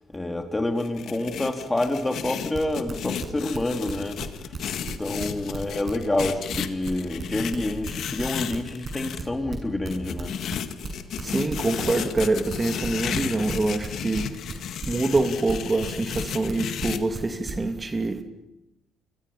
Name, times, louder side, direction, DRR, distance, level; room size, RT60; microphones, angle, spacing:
voice 1, 0.1-4.5 4.8-10.4, left 2 dB, 15° left, 3.5 m, -28 dB
sound 1, 0.8-9.2 9.9-17.0, left 9 dB, 65° left, 1.8 m, -34 dB
sound 2, 2.5-4.3 4.5-8.6 8.8-12.5 12.8-17.5, right 6 dB, 45° right, 7.2 m, -35 dB
voice 2, 11.2-14.3 14.9-18.2, right 2 dB, 25° right, 2.6 m, -25 dB
29.5 x 25.5 x 5.8 m
supercardioid pair, 70°, 0 cm